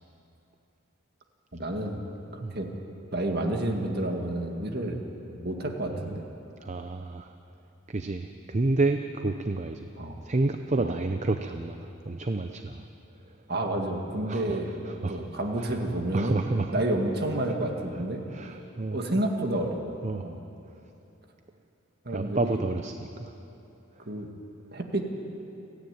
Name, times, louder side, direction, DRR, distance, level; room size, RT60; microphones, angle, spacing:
voice 1, 1.5-2.0 2.3-2.7 3.1-5.0 5.3-6.3 10.0-10.2 10.8-11.0 13.5-14.8 15.1-16.4 16.7-18.2 18.9-19.9 20.2-20.4 22.1-22.6 24.1-24.3 24.7-25.1, right 1 dB, 50° right, 3 dB, 1.9 m, -30 dB
voice 2, 5.9-6.2 6.6-7.3 7.9-9.9 10.2-12.9 13.3-13.4 14.3-14.6 14.8-15.3 15.6-15.8 16.1-16.8 18.3-19.0 20.0-20.2 20.6-20.8 22.1-23.3 23.9-24.0, right 2 dB, 35° right, 7 dB, 0.6 m, -30 dB
30.0 x 10.0 x 9.2 m, 2.9 s
head